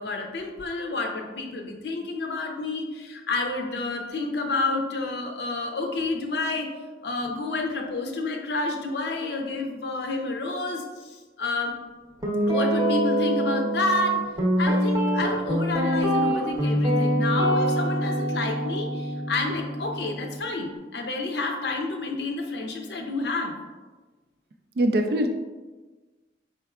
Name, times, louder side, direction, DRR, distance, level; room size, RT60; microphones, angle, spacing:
voice 1, 0.0-6.7 7.0-11.7 12.5-14.2 14.6-23.6, left 2 dB, 70° left, 3 dB, 0.6 m, -29 dB
Guitar, 12.2-20.4, equal, 20° right, 0.7 m, -25 dB
voice 2, 24.8-25.3, right 1 dB, 55° right, 5 dB, 0.4 m, -22 dB
4.4 x 4.3 x 2.4 m, 1.3 s
head